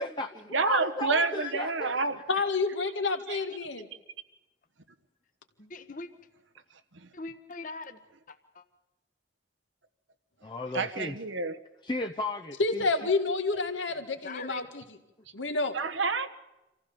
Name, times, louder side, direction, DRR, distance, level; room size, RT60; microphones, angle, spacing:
voice 1, 0.0-2.0 10.4-11.2 11.8-12.8, left 2 dB, 25° left, 5 dB, 0.6 m, -34 dB
voice 2, 0.5-2.2 3.3-3.4 6.9-7.1 10.7-11.6 15.7-16.3, right 4 dB, 85° right, 9 dB, 1.3 m, -29 dB
voice 3, 2.3-3.9 12.6-15.0 15.3-15.7, left 3 dB, 85° left, 6 dB, 2.1 m, -29 dB
voice 4, 5.6-6.1 7.1-8.0 8.3-8.6 14.2-14.6, left 3 dB, 45° left, 9 dB, 1.2 m, -41 dB
26.0 x 15.5 x 7.0 m, 0.99 s
head